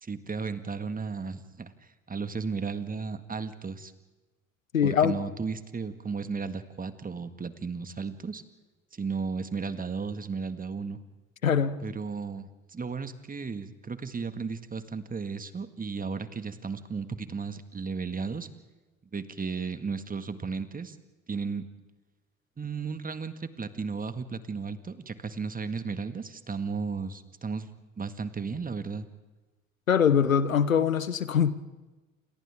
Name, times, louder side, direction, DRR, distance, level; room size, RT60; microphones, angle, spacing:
voice 1, 0.0-1.7 2.1-3.9 4.8-8.4 8.9-11.0 11.8-18.5 19.1-21.0 21.3-21.7 22.6-27.7 28.0-29.1, right 5 dB, 20° right, 11 dB, 1.8 m, -34 dB
voice 2, 4.7-5.2 11.4-11.8 29.9-31.5, left 7 dB, 90° left, 16 dB, 0.9 m, -23 dB
28.5 x 27.5 x 3.6 m, 1.2 s
figure-of-eight pair, 60°, 39 cm